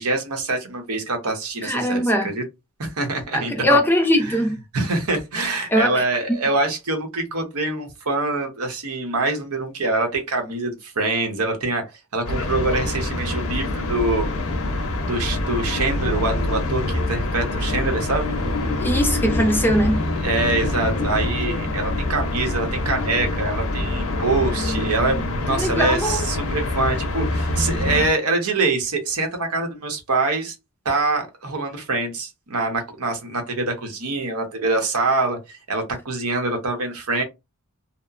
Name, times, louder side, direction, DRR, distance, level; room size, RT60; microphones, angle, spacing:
voice 1, 0.0-2.4 2.8-3.8 4.2-4.5 4.7-11.8 12.1-14.3 15.0-18.3 20.2-30.5 30.8-37.2, right 2 dB, 75° right, 0.9 m, -25 dB
voice 2, 1.6-2.3 3.3-4.6 5.7-6.0 18.8-20.0 25.6-26.2, equal, 10° left, 0.4 m, -20 dB
sound 1, 12.2-28.1, left 2 dB, 65° left, 0.6 m, -25 dB
2.8 x 2.1 x 2.4 m
head